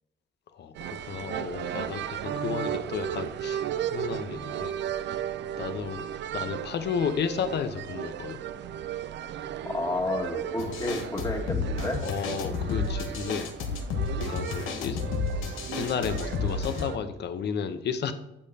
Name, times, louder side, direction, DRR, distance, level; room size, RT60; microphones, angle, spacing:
voice 1, 0.6-4.8 5.6-6.1 6.3-8.4 10.6-10.8 12.0-13.5 14.3-15.0 15.7-18.1, left 7 dB, 60° left, 10 dB, 0.8 m, -33 dB
sound 1, 0.7-17.0, right 10 dB, 65° right, 0.5 m, -35 dB
voice 2, 9.6-12.0, left 2 dB, 20° left, 0 dB, 1.8 m, -31 dB
sound 2, 10.6-16.9, left 5 dB, 85° left, 1.1 m, -31 dB
8.5 x 6.6 x 2.8 m, 0.91 s
cardioid pair, 90°, 20 cm